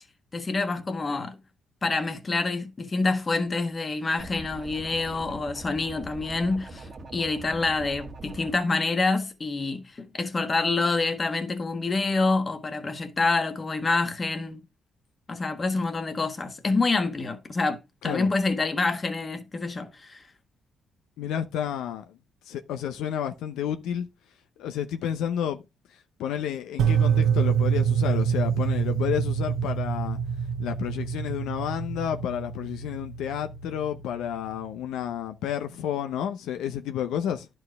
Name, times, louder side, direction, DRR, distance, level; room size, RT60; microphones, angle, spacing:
voice 1, 0.3-1.4 1.8-14.6 15.3-20.2, left 3 dB, 30° left, 1.4 m, -27 dB
sound 1, 4.2-8.6, right 2 dB, 40° right, 1.4 m, -42 dB
voice 2, 21.2-22.2 22.5-24.1 24.6-25.6 26.2-30.2 30.6-37.5, left 9 dB, 85° left, 0.7 m, -30 dB
sound 2, 26.8-34.9, right 7 dB, 85° right, 1.1 m, -27 dB
11.0 x 4.5 x 3.4 m
cardioid pair, 90°, 0 cm